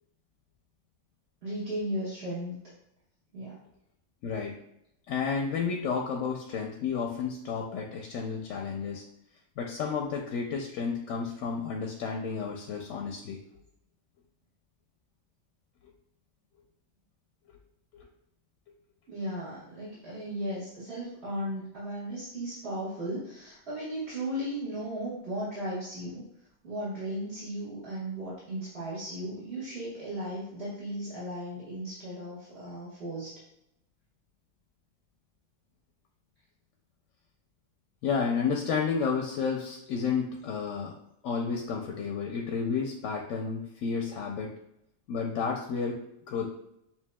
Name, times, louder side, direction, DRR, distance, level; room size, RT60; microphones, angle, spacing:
voice 1, 1.4-2.5 3.3-3.6 19.1-26.2 26.6-33.3, right 1 dB, 50° right, -11 dB, 1.6 m, -36 dB
voice 2, 4.2-4.6 5.1-9.0 9.6-13.4 17.9-18.0 38.0-40.9 41.2-44.5 45.1-46.0 46.3-46.5, left 5 dB, 90° left, 1 dB, 1.0 m, -31 dB
7.1 x 2.5 x 2.2 m, 0.80 s
omnidirectional pair, 1.3 m